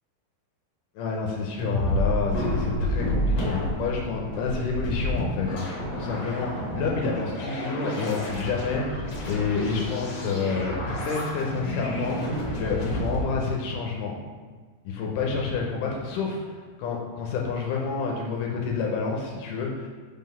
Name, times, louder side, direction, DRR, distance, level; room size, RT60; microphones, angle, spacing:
voice 1, 1.0-14.2 14.9-19.9, left 4 dB, 80° left, 0 dB, 2.2 m, -29 dB
sound 1, 1.6-13.2, equal, 60° left, 2.2 m, -30 dB
5.3 x 3.8 x 5.4 m, 1.5 s
omnidirectional pair, 3.8 m